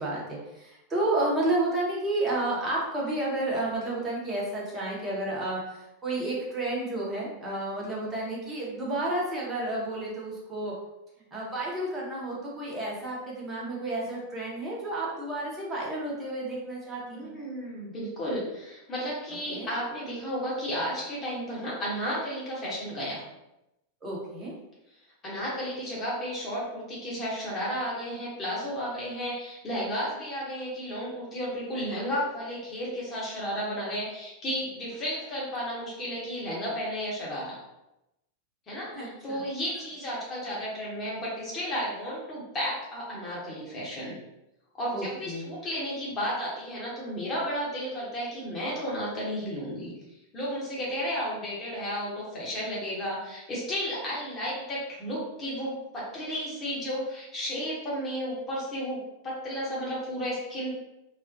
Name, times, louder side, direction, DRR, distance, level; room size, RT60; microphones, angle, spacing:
voice 1, 0.0-10.7 11.3-17.3 19.5-19.7 24.0-24.5 38.9-39.4 44.9-45.5, right 2 dB, 20° right, -4 dB, 0.9 m, -31 dB
voice 2, 17.0-23.2 25.2-37.6 38.7-44.2 44.8-49.9 50.3-60.7, equal, 25° left, -6 dB, 0.8 m, -33 dB
2.4 x 2.1 x 2.6 m, 0.91 s
figure-of-eight pair, 90°, 0 cm